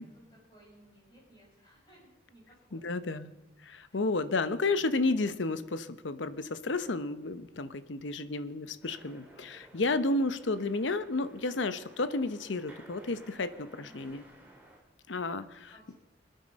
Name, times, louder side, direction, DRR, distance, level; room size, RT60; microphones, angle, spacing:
voice 1, 0.0-3.0 3.9-4.0 13.8-14.2 15.7-15.9, right 1 dB, 25° left, -4 dB, 6.2 m, -59 dB
voice 2, 2.7-3.3 3.7-14.2 15.1-15.9, left 3 dB, 80° left, 12 dB, 0.8 m, -32 dB
sound 1, 8.8-14.8, right 1 dB, 10° right, 2.9 m, -55 dB
25.0 x 9.3 x 5.2 m, 1.1 s
head